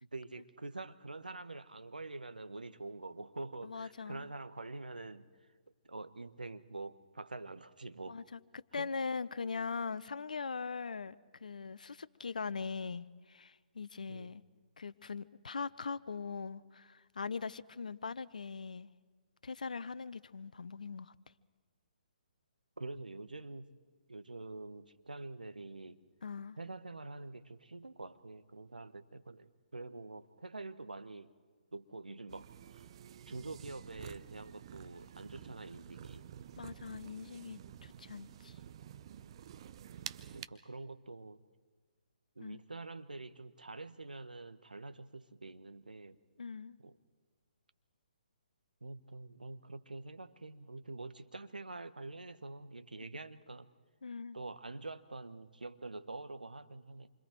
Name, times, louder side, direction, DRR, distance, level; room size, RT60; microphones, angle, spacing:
voice 1, 0.0-5.3 5.9-8.2 8.8-8.9 14.1-14.3 22.8-23.7 24.1-26.0 26.6-31.3 31.7-32.8 33.3-36.3 40.3-41.4 42.3-46.2 46.8-47.0 48.8-53.7 54.3-57.1, right 2 dB, 80° right, 1.2 m, -46 dB
voice 2, 3.6-4.3 8.1-14.4 14.8-18.9 19.4-21.1 26.2-26.6 36.6-38.6 42.4-42.6 46.4-46.8 54.0-54.4, left 5 dB, 65° left, 0.8 m, -41 dB
sound 1, 32.3-40.5, right 10 dB, 40° right, 0.8 m, -50 dB
27.5 x 25.5 x 4.6 m
figure-of-eight pair, 135°, 5 cm